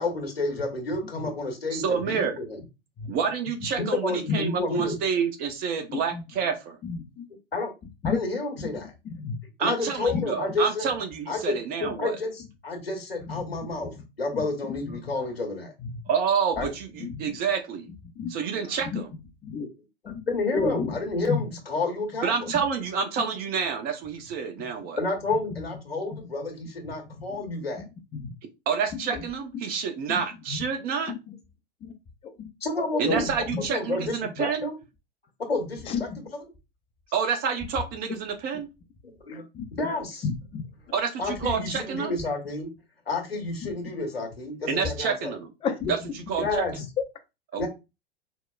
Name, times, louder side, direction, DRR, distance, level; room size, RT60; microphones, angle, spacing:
voice 1, 0.0-2.6 3.8-5.0 7.5-7.7 8.0-8.9 9.6-10.9 11.3-11.6 12.0-12.3 12.6-15.7 16.6-16.7 18.4-18.8 19.5-19.6 20.0-22.5 25.0-27.8 30.9-31.0 32.6-33.3 33.7-34.7 35.5-35.9 39.2-39.4 39.8-40.2 41.2-42.7 43.1-45.4 46.4-46.8 47.6-47.7, left 2 dB, 80° left, 3 dB, 1.1 m, -30 dB
voice 2, 1.7-2.4 3.1-6.8 9.6-12.2 16.1-17.9 18.3-19.1 22.2-25.0 28.7-31.1 33.0-34.7 37.1-38.7 40.9-42.2 44.7-45.5 45.9-46.0 46.3-46.6 47.5-47.7, right 6 dB, 30° right, 7 dB, 0.7 m, -28 dB
voice 3, 5.9-6.2 6.8-7.3 8.0-8.2 8.6-8.7 9.0-9.4 10.1-10.2 11.8-11.9 13.2-13.7 13.9-14.0 14.3-15.0 15.8-16.0 16.6-16.7 17.0-17.4 18.2-18.4 18.8-19.0 19.4-19.7 20.1-20.2 20.5-21.0 21.3-21.5 22.5-22.6 25.5-25.6 26.1-26.2 26.9-27.0 27.3-27.4 27.7-27.8 28.1-28.3 29.0-29.3 30.5-30.6 31.1-31.3 31.8-31.9 32.2-32.5 33.1-33.6 34.4-34.5 35.9-36.2 39.3-39.9 40.2-40.6 43.6-43.7 45.6-46.1 46.8-46.9, left 5 dB, 20° left, 6 dB, 0.5 m, -32 dB
4.5 x 2.1 x 2.3 m, 0.26 s
figure-of-eight pair, 90°, 30 cm